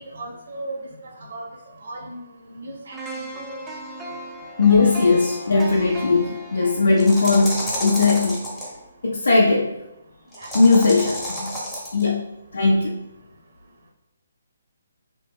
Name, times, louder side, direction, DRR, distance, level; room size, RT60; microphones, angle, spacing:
voice 1, 0.0-3.3 6.1-6.3 6.6-7.1 10.3-10.8, right 2 dB, 60° right, 0 dB, 0.7 m, -38 dB
sound 1, 2.9-8.9 9.3-9.5, right 1 dB, 10° right, 0.4 m, -37 dB
voice 2, 4.6-8.4 9.0-9.7 10.5-11.6 11.9-12.2 12.5-12.9, left 3 dB, 75° left, -4 dB, 0.4 m, -18 dB
sound 2, 7.0-8.7 10.3-12.0, equal, 5° left, 0.8 m, -30 dB
2.9 x 2.0 x 3.5 m, 0.90 s
figure-of-eight pair, 140°, 0 cm